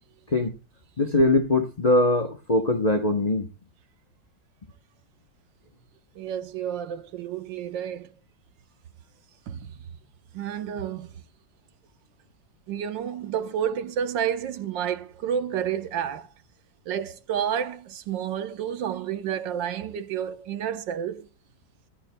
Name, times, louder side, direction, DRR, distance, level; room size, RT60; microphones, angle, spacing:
voice 1, 1.0-3.5, left 2 dB, 35° left, 0.7 m, -22 dB
voice 2, 6.1-8.1 9.5-9.8 10.3-11.1 12.7-16.3 16.9-21.3, right 9 dB, 85° right, 1.7 m, -30 dB
27.0 x 14.0 x 2.2 m
omnidirectional pair, 1.9 m